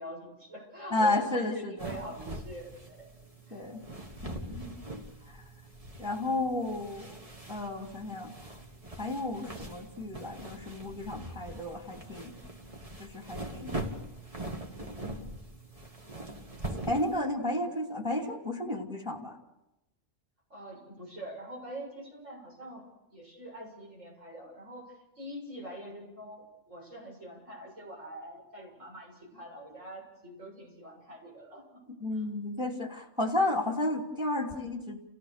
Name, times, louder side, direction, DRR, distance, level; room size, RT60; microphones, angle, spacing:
voice 1, 0.0-3.1 3.5-3.6 9.5-9.7 17.3-17.7 20.5-22.9 23.1-32.3, right 1 dB, 85° right, -2 dB, 7.9 m, -45 dB
voice 2, 0.9-1.9 3.5-3.8 4.2-4.7 6.0-7.2 7.5-8.3 9.0-12.3 13.0-14.0 16.9-19.4 32.0-35.0, left 2 dB, 5° right, 1 dB, 2.8 m, -32 dB
sound 1, 1.8-17.2, right 1 dB, 30° right, 2.0 m, -42 dB
30.0 x 16.5 x 6.7 m, 0.94 s
omnidirectional pair, 1.3 m